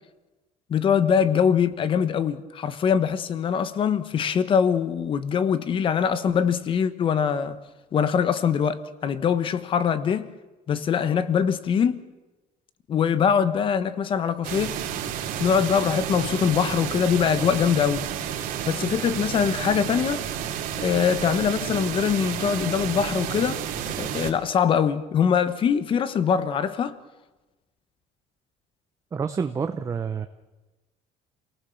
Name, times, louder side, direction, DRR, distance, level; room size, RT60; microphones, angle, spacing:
voice 1, 0.7-7.6 7.9-10.3 10.7-12.0 12.9-14.8 15.4-18.1 18.3-20.2 20.8-23.6 24.0-27.0, left 7 dB, 35° left, 1.2 m, -23 dB
sound 1, 14.4-24.3, right 9 dB, 70° right, 2.9 m, -31 dB
voice 2, 29.1-30.3, right 6 dB, 20° right, 0.8 m, -28 dB
28.5 x 18.5 x 7.2 m
cardioid pair, 160°, 15 cm